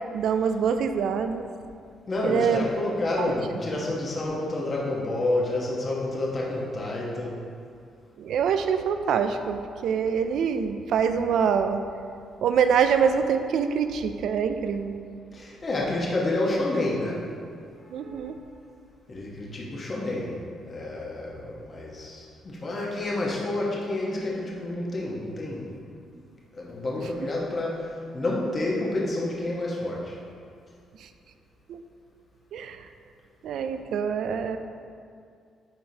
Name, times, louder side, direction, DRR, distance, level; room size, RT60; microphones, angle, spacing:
voice 1, 0.1-1.5 2.2-2.6 3.2-3.3 8.2-11.9 12.4-15.0 17.9-18.4 31.0-31.1 31.7-31.8 32.5-32.9 33.4-34.6, right 7 dB, 75° right, 9 dB, 0.3 m, -25 dB
voice 2, 2.1-7.4 15.3-17.3 17.8-18.3 19.1-25.7 26.1-26.2 26.5-30.2, left 2 dB, 35° left, -4 dB, 1.1 m, -29 dB
9.9 x 3.8 x 2.8 m, 2.3 s
cardioid pair, 90°, 0 cm